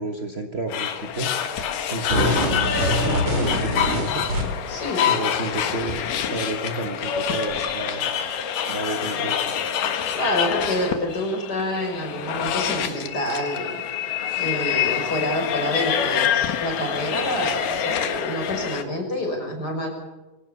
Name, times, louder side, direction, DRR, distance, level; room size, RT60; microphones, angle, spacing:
voice 1, 0.0-1.5 1.9-4.3 5.0-8.1 8.7-9.6, right 2 dB, 80° right, 5 dB, 0.5 m, -31 dB
sound 1, 0.7-18.8, left 8 dB, 85° left, 3.2 m, -26 dB
sound 2, 2.1-4.8, equal, 55° right, 5.0 m, -24 dB
voice 2, 4.7-5.2 10.1-13.8 14.4-20.0, left 1 dB, 30° left, 3 dB, 6.2 m, -27 dB
24.5 x 17.5 x 7.0 m, 1.1 s
omnidirectional pair, 3.7 m